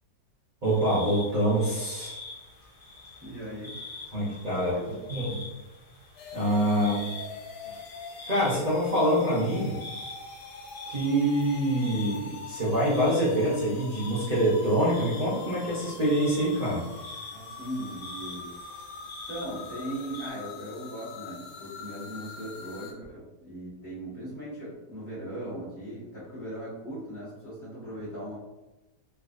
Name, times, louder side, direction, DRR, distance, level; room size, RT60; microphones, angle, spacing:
sound 1, 0.6-20.3, left 3 dB, 60° left, 0.5 m, -46 dB
voice 1, 0.6-2.2 4.1-4.8 5.1-5.4 6.3-7.0 8.3-9.8 10.9-16.9, right 1 dB, 45° right, -8 dB, 0.5 m, -25 dB
voice 2, 3.2-3.7 4.5-5.0 17.3-18.5 19.3-28.4, right 1 dB, 30° left, -10 dB, 1.3 m, -38 dB
sound 2, 6.2-22.9, left 4 dB, 75° left, 1.1 m, -44 dB
3.3 x 3.1 x 2.5 m, 1.0 s
omnidirectional pair, 1.9 m